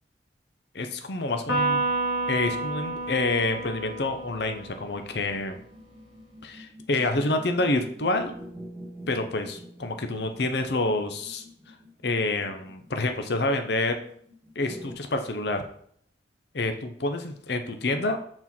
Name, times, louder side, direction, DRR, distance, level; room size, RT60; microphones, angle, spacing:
voice 1, 0.7-1.8 2.3-5.6 6.4-8.3 9.1-11.4 12.0-13.9 14.6-15.6 16.5-18.2, left 2 dB, 60° left, 6 dB, 0.7 m, -27 dB
Electric guitar, 1.5-5.0, right 2 dB, 80° left, 1.9 m, -29 dB
sound 1, 4.9-14.9, equal, 10° right, 2.1 m, -47 dB
6.1 x 4.5 x 5.9 m, 0.64 s
head